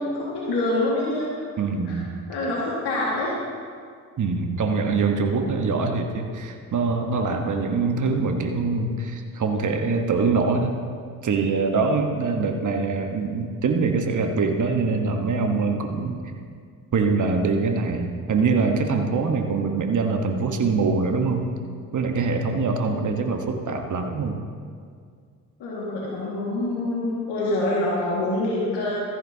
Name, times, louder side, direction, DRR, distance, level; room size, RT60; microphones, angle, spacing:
voice 1, 0.0-1.3 1.9-2.0 2.3-3.4 25.6-28.9, left 2 dB, 65° left, -6 dB, 2.1 m, -26 dB
voice 2, 1.6-2.1 4.2-10.8 11.2-16.2 16.9-21.4 21.9-24.4, right 4 dB, 40° right, 4 dB, 1.3 m, -24 dB
14.0 x 10.5 x 2.8 m, 2.1 s
hypercardioid pair, 45°, 44 cm